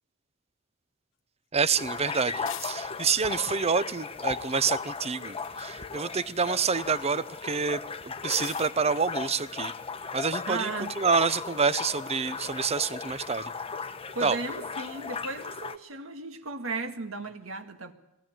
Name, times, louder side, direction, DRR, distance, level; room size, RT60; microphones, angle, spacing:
voice 1, 1.5-9.7 10.1-10.7 11.0-13.5 14.2-14.4, right 5 dB, 30° right, 0.8 m, -27 dB
sound 1, 1.8-15.8, left 5 dB, 30° left, 1.0 m, -36 dB
sound 2, 2.4-2.8 5.2-5.7 8.3-8.7, left 10 dB, 65° left, 0.9 m, -41 dB
voice 2, 10.5-11.0 14.1-17.9, right 3 dB, 70° right, 2.0 m, -35 dB
21.5 x 17.0 x 9.1 m
head